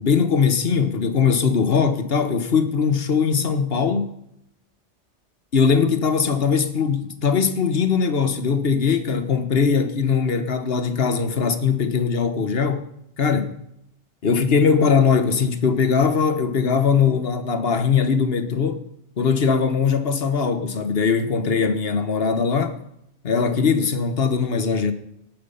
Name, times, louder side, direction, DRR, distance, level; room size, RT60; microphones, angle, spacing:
voice 1, 0.0-4.1 5.5-12.9 13.2-13.5 14.2-18.8 19.2-22.8 23.2-24.9, left 5 dB, 60° left, 1.4 m, -20 dB
18.0 x 9.4 x 5.6 m
omnidirectional pair, 1.2 m